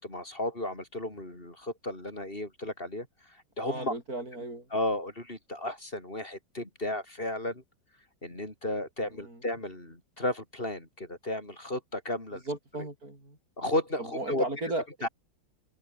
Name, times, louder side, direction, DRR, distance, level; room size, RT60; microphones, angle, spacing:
voice 1, 0.0-3.1 3.6-3.9 4.7-7.6 8.2-12.4 13.6-14.4 15.0-15.1, left 1 dB, 25° left, 5.5 m, -33 dB
voice 2, 3.6-4.7 9.1-9.4 12.3-13.4 14.0-14.8, right 2 dB, 45° right, 8.6 m, -36 dB
open air
omnidirectional pair, 2.1 m